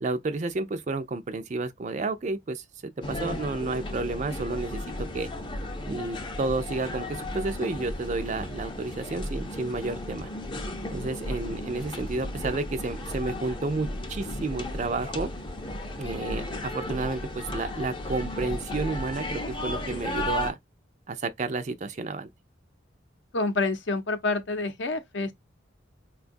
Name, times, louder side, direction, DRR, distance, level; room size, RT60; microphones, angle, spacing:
voice 1, 0.0-4.8 5.1-5.3 5.9-10.3 10.9-15.3 16.0-20.6 21.1-22.3, right 3 dB, 40° right, 0.4 m, -31 dB
sound 1, 3.0-20.5, left 1 dB, 25° left, 0.5 m, -34 dB
voice 2, 23.3-25.3, left 3 dB, 65° left, 0.7 m, -28 dB
4.4 x 2.3 x 2.5 m
head